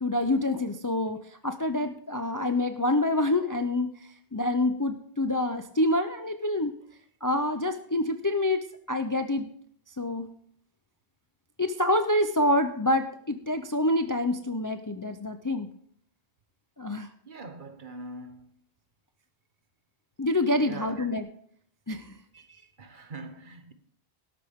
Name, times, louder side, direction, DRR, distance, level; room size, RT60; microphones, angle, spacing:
voice 1, 0.0-6.7 7.2-8.6 8.9-9.5 9.9-10.3 11.6-15.7 16.8-17.1 20.2-21.3 21.9-22.4, left 1 dB, 25° left, 0.5 m, -27 dB
voice 2, 17.3-18.5 20.6-21.0 22.8-23.7, right 2 dB, 50° right, 1.2 m, -42 dB
13.0 x 12.0 x 3.6 m
omnidirectional pair, 1.1 m